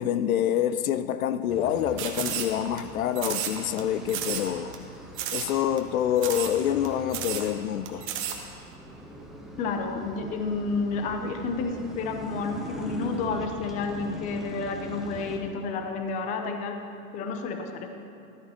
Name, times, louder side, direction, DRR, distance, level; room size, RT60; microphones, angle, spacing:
voice 1, 0.0-4.8 5.3-8.1, left 10 dB, 65° left, 0.6 m, -27 dB
sound 1, 1.5-15.4, right 1 dB, ahead, 0.9 m, -42 dB
sound 2, 2.0-2.8 3.2-3.8 4.1-4.5 4.7-4.8 5.2-5.5 5.8-5.9 6.2-6.6 6.8-6.9 7.1-7.5 7.9-8.4, right 10 dB, 25° right, 1.0 m, -32 dB
voice 2, 9.6-16.8 17.1-17.9, left 4 dB, 15° left, 0.6 m, -30 dB
13.0 x 9.2 x 4.3 m
hypercardioid pair, 135°, 45 cm